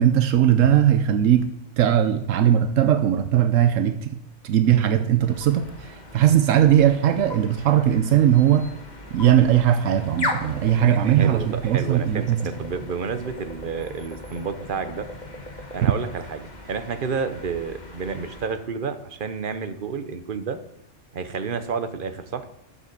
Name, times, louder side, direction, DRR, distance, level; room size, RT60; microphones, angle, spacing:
voice 1, 0.0-4.2 4.4-8.7 9.1-12.5 15.8-15.9, right 10 dB, 80° right, 10 dB, 1.0 m, -19 dB
sound 1, 5.2-18.6, left 2 dB, 35° left, 1.6 m, -38 dB
voice 2, 10.9-15.1 15.7-20.6 21.1-22.4, right 5 dB, 45° right, 10 dB, 1.0 m, -30 dB
11.5 x 7.3 x 6.7 m, 0.77 s
omnidirectional pair, 1.3 m